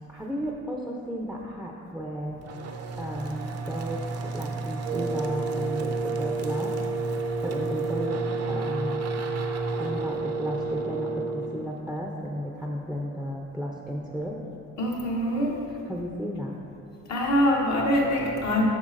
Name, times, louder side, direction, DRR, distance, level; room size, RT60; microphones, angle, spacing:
voice 1, 0.1-2.4 3.0-6.8 7.1-8.2 8.5-9.1 9.8-14.4 15.7-16.6, equal, ahead, -1 dB, 0.5 m, -34 dB
sound 1, 2.4-12.0, right 3 dB, 55° right, 0.6 m, -35 dB
Wind instrument woodwind instrument, 4.8-11.6, right 3 dB, 80° right, 0.9 m, -31 dB
voice 2, 14.8-15.5 17.1-18.7, equal, 65° left, -2 dB, 1.2 m, -24 dB
8.0 x 5.6 x 2.5 m, 2.8 s
cardioid pair, 90°, 30 cm